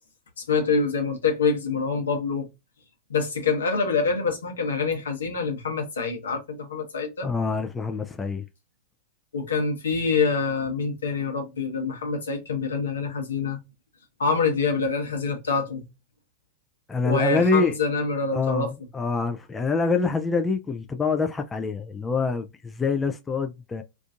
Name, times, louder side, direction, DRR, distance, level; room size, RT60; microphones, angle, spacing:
voice 1, 0.5-2.5 3.1-7.3 9.3-13.6 14.2-15.8 17.0-18.7, left 4 dB, 75° left, 0.9 m, -26 dB
voice 2, 7.2-8.4 16.9-17.7 18.3-23.8, left 4 dB, 15° left, 0.3 m, -25 dB
2.5 x 2.4 x 2.4 m
figure-of-eight pair, 95°, 0 cm